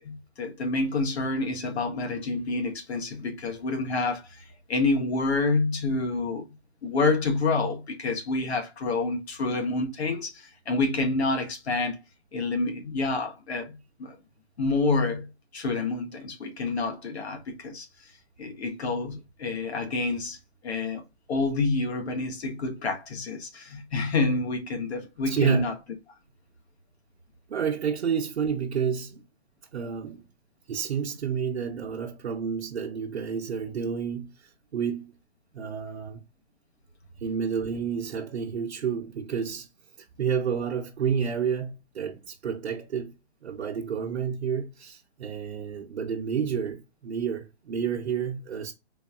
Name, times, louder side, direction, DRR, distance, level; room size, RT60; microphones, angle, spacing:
voice 1, 0.0-6.5 6.8-12.0 12.3-14.2 14.6-18.1 18.4-20.4 20.6-21.0 21.3-25.7, left 3 dB, 75° left, 1.7 m, -28 dB
voice 2, 25.2-25.7 27.5-29.2 29.7-30.2 30.7-35.1 35.5-36.2 37.2-39.7 40.2-43.1 43.4-48.7, right 7 dB, 80° right, 0.9 m, -30 dB
3.9 x 3.5 x 2.4 m
hypercardioid pair, 150°, 32 cm